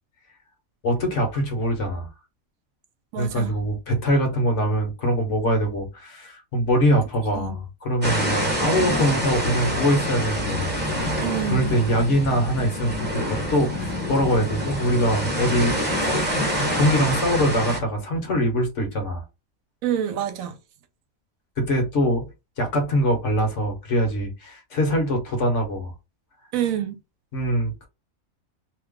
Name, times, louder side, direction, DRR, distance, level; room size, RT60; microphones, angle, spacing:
voice 1, 0.8-2.1 3.2-10.7 11.5-15.8 16.0-19.2 21.6-22.3 22.6-25.9 27.3-27.9, equal, 60° left, 1.3 m, -23 dB
voice 2, 3.1-3.5 7.3-7.6 11.2-11.8 19.8-20.6 26.5-27.0, right 10 dB, 80° right, 1.0 m, -27 dB
sound 1, 8.0-17.8, equal, 10° right, 0.9 m, -26 dB
2.9 x 2.1 x 3.6 m
omnidirectional pair, 1.4 m